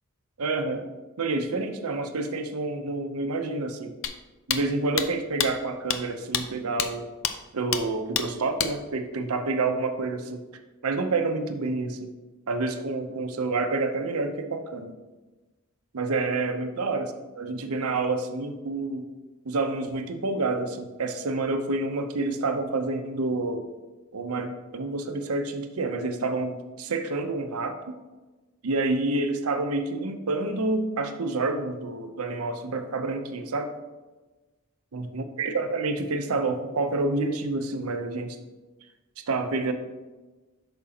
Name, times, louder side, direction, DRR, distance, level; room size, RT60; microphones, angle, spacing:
voice 1, 0.4-0.9 1.2-3.9 4.5-7.1 7.5-10.4 10.8-12.1 12.5-14.9 15.9-17.1 17.4-19.1 19.4-23.6 24.1-27.9 28.6-33.7 34.9-38.4 39.3-39.7, right 3 dB, 90° right, 7 dB, 0.7 m, -28 dB
sound 1, 4.0-4.1 4.5-4.6 5.0-5.1 5.4-5.5 5.9-6.0 6.3-6.4 6.8-6.9 7.2-7.3 7.7-7.8 8.1-8.3 8.6-8.7, left 9 dB, 65° left, 0.5 m, -26 dB
8.7 x 6.1 x 2.9 m, 1.2 s
head